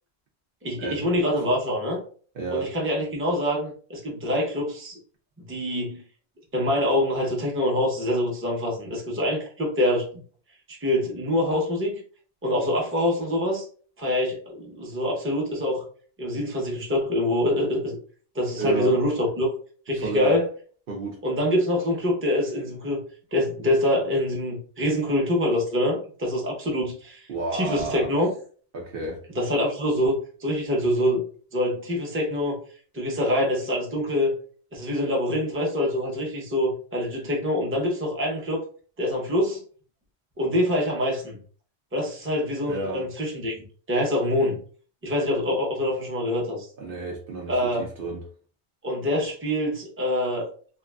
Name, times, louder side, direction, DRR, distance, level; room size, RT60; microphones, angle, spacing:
voice 1, 0.6-2.0 2.5-5.0 5.4-6.0 6.5-10.2 10.7-12.0 12.4-13.6 14.0-15.8 16.2-18.0 18.3-19.5 19.9-20.5 21.2-23.0 23.3-28.3 29.4-31.2 31.5-32.6 32.9-34.3 34.7-38.6 39.0-39.6 40.4-41.4 41.9-43.6 43.9-44.6 45.0-46.7 47.5-47.8 48.8-50.5, left 1 dB, 15° right, 0.7 m, -25 dB
voice 2, 2.3-2.7 18.6-19.0 20.0-20.4 20.9-21.2 27.3-28.1 28.7-29.2 42.7-43.1 46.8-48.3, right 3 dB, 60° right, 0.8 m, -31 dB
3.0 x 2.4 x 2.3 m
omnidirectional pair, 1.1 m